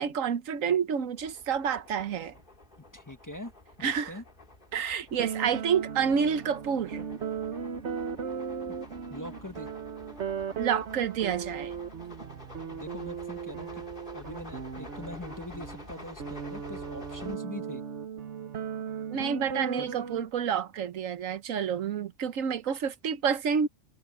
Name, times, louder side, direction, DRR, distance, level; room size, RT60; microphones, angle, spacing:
voice 1, 0.0-2.3 3.8-4.1 4.7-7.0 10.6-11.7 19.1-23.7, right 7 dB, 80° right, 1.3 m, -29 dB
sound 1, 1.2-17.4, left 2 dB, 40° left, 4.4 m, -50 dB
voice 2, 2.9-3.5 3.8-4.2 8.7-8.8 9.1-9.7 12.6-13.9 14.1-17.8 19.8-19.9, left 1 dB, 15° left, 1.3 m, -42 dB
sound 2, 5.2-20.3, right 6 dB, 65° right, 1.3 m, -37 dB
omnidirectional pair, 1.3 m